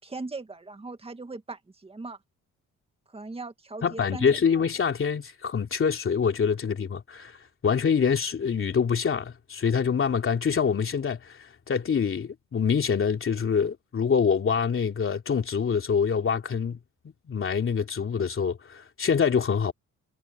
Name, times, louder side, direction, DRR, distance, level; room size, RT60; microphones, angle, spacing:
voice 1, 0.0-2.2 3.1-4.6, right 3 dB, 20° right, 2.2 m, -39 dB
voice 2, 3.8-16.8 17.3-19.7, left 6 dB, 45° left, 3.0 m, -25 dB
cardioid pair, 90°, 30 cm